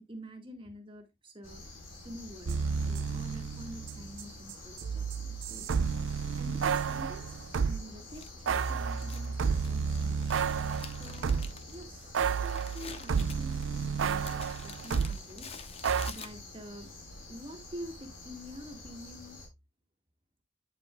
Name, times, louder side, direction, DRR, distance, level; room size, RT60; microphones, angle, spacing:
voice 1, 0.0-1.6 2.0-2.6 2.9-5.7 6.4-7.4 7.6-10.5 10.9-15.5 16.0-16.9 17.3-19.4, equal, 25° right, 1.7 m, -47 dB
sound 1, 1.4-19.5, left 2 dB, 90° left, 3.6 m, -49 dB
sound 2, 2.5-4.2 4.5-7.8 8.5-11.7 12.1-15.2 15.8-16.1, right 6 dB, 80° right, 0.5 m, -31 dB
Crumpling crinkling, 8.1-16.7, left 6 dB, 30° left, 0.9 m, -49 dB
9.0 x 7.8 x 2.2 m
head